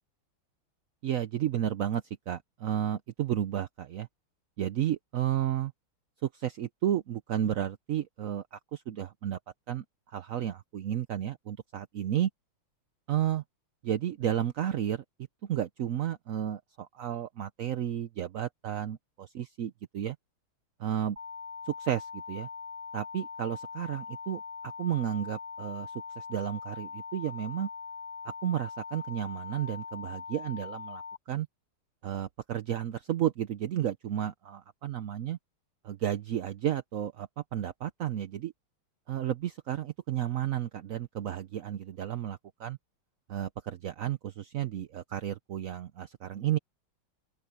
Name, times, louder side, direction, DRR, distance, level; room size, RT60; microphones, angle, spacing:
voice 1, 1.0-4.1 4.6-5.7 6.2-9.4 9.7-9.8 10.1-12.3 13.1-13.4 13.8-15.0 15.4-19.0 19.3-20.2 20.8-21.2 21.7-22.5 22.9-27.7 28.4-31.0 31.3-31.5 32.0-35.4 35.8-38.5 39.1-42.8 43.3-46.6, right 11 dB, 70° right, 0.8 m, -32 dB
sound 1, 21.2-31.2, left 7 dB, 25° right, 2.6 m, -42 dB
open air
omnidirectional pair, 2.3 m